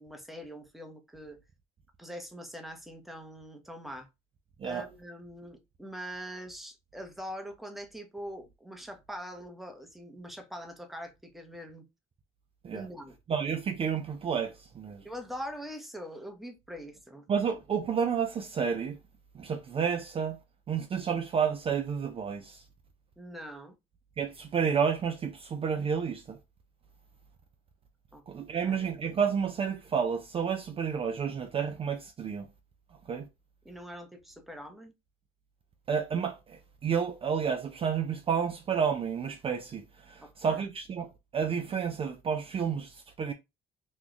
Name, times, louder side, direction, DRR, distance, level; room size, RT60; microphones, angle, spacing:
voice 1, 0.0-1.4 2.0-4.1 4.6-11.9 12.7-13.2 15.0-17.3 23.2-23.7 28.1-28.2 28.6-28.8 33.6-34.9 40.2-40.6, equal, ahead, 0.8 m, -43 dB
voice 2, 13.3-15.0 17.3-19.0 19.3-20.4 20.7-22.6 24.2-26.4 28.3-32.5 33.1-33.3 35.9-43.3, right 6 dB, 35° right, 0.4 m, -30 dB
3.0 x 2.3 x 3.8 m
cardioid pair, 110°, 17 cm